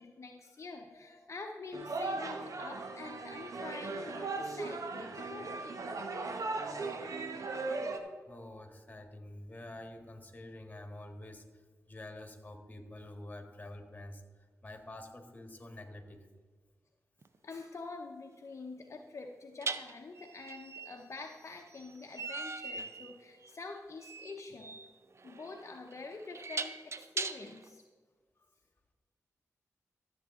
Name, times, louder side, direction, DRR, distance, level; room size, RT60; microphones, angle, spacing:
voice 1, 0.0-5.6 17.4-24.8 25.2-27.8, left 3 dB, 50° left, 2 dB, 0.8 m, -46 dB
sound 1, 1.7-8.0, right 3 dB, 65° right, 1.0 m, -38 dB
voice 2, 6.3-6.6 7.9-11.6 11.9-14.2 14.6-16.3, left 1 dB, 25° left, 5 dB, 1.6 m, -48 dB
sound 2, 17.2-17.4 19.6-27.7, right 4 dB, 50° right, 0.6 m, -41 dB
13.5 x 7.5 x 3.7 m, 1.5 s
cardioid pair, 60°, 6 cm